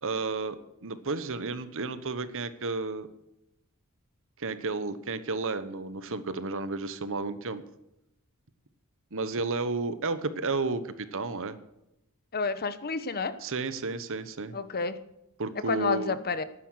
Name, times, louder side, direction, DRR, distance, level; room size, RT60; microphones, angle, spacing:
voice 1, 0.0-3.1 4.4-7.6 9.1-11.6 13.4-14.6 15.4-16.2, right 3 dB, 65° right, 13 dB, 1.1 m, -32 dB
voice 2, 12.3-13.3 14.5-15.0 15.7-16.4, left 4 dB, 45° left, 13 dB, 0.9 m, -29 dB
12.0 x 9.9 x 6.4 m, 0.85 s
head